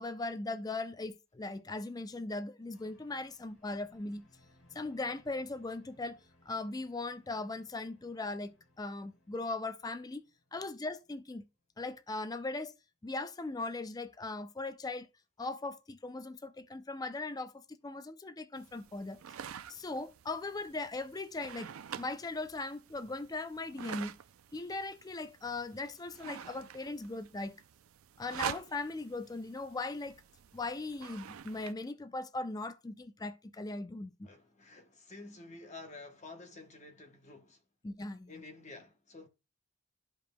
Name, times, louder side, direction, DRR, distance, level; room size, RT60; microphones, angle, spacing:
voice 1, 0.0-4.2 4.7-6.2 6.5-10.2 10.5-11.4 11.8-12.7 13.0-15.1 15.4-19.2 19.7-21.7 22.0-24.2 24.5-27.6 28.2-30.2 30.5-34.3 37.8-38.3, left 2 dB, 20° left, 0.4 m, -39 dB
sound 1, 2.7-11.9 12.1-12.3, left 1 dB, 90° left, 3.3 m, -67 dB
sound 2, 18.6-31.7, right 9 dB, 90° right, 0.4 m, -47 dB
voice 2, 34.2-37.6 38.3-39.3, left 3 dB, 35° left, 1.0 m, -50 dB
12.5 x 5.0 x 2.2 m
head